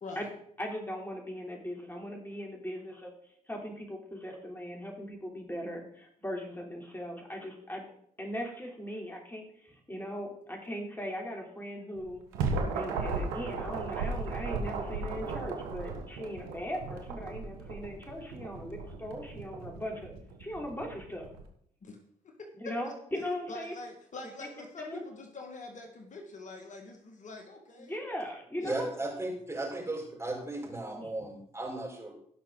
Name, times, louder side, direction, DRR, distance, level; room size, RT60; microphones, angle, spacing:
voice 1, 0.6-3.1 3.5-7.9 8.2-12.2 12.7-20.1 20.4-21.3 22.5-23.7 24.8-25.0 27.8-28.9 31.0-31.1, equal, 15° left, 0 dB, 3.4 m, -39 dB
sound 1, 12.0-21.4, right 4 dB, 90° right, 1.4 m, -36 dB
voice 2, 22.2-28.0 28.6-29.0, left 3 dB, 50° left, 3 dB, 1.8 m, -45 dB
voice 3, 28.6-32.1, right 2 dB, 15° right, 0 dB, 4.8 m, -36 dB
17.0 x 6.0 x 3.9 m, 0.67 s
hypercardioid pair, 55°, 16 cm